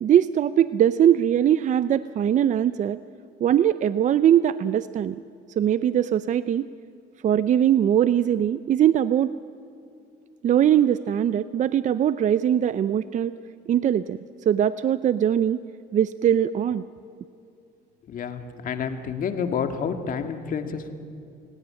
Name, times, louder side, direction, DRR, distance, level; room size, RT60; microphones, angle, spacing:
voice 1, 0.0-3.0 3.4-5.2 5.6-6.7 7.2-9.3 10.4-13.3 13.7-14.2 14.5-15.6 15.9-16.8, right 10 dB, 45° right, 14 dB, 0.6 m, -21 dB
voice 2, 18.1-20.9, left 6 dB, 55° left, 7 dB, 2.1 m, -29 dB
29.0 x 17.5 x 8.9 m, 2.6 s
cardioid pair, 110°, 17 cm